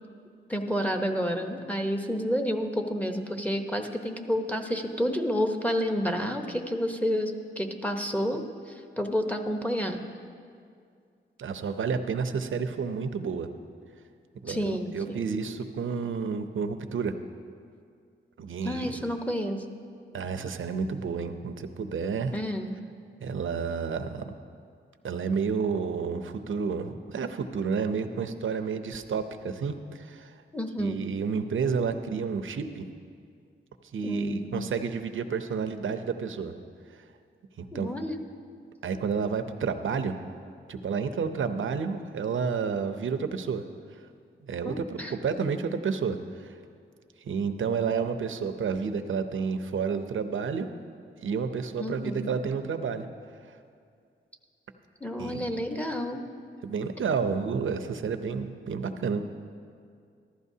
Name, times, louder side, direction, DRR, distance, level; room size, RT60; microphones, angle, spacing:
voice 1, 0.5-10.0 14.5-15.2 18.6-19.6 22.3-22.7 30.5-31.1 34.0-34.7 37.7-38.2 44.6-45.1 51.8-52.3 55.0-56.3, equal, 5° left, 4 dB, 0.9 m, -30 dB
voice 2, 11.4-13.5 14.4-17.1 18.4-18.9 20.1-22.3 23.2-24.3 25.0-30.4 30.8-32.9 33.8-36.5 36.9-37.1 37.6-37.9 38.8-40.2 40.7-43.6 43.9-44.0 44.4-46.6 47.2-50.7 51.2-53.1 53.4-53.6 55.2-55.5 56.6-59.2, right 5 dB, 70° right, 9 dB, 0.7 m, -30 dB
14.5 x 12.0 x 2.8 m, 2.3 s
cardioid pair, 55°, 21 cm